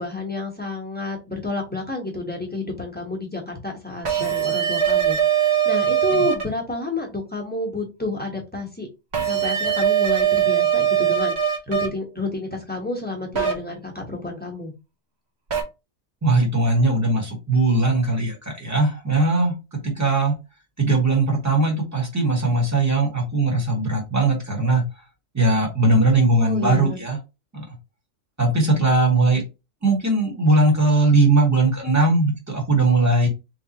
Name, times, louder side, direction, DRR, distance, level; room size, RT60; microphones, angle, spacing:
voice 1, 0.0-5.4 5.6-8.9 9.2-14.7 26.3-27.0, left 3 dB, 10° left, 0 dB, 1.0 m, -30 dB
sound 1, 4.0-6.4 9.1-11.9 13.3-13.5 15.5-15.6, right 9 dB, 60° right, 1.1 m, -20 dB
voice 2, 16.2-20.3 20.8-24.9 25.3-27.2 27.5-27.6 28.4-29.4 29.8-33.3, right 2 dB, 15° right, 0 dB, 1.2 m, -19 dB
3.3 x 3.2 x 2.9 m, 0.27 s
omnidirectional pair, 1.3 m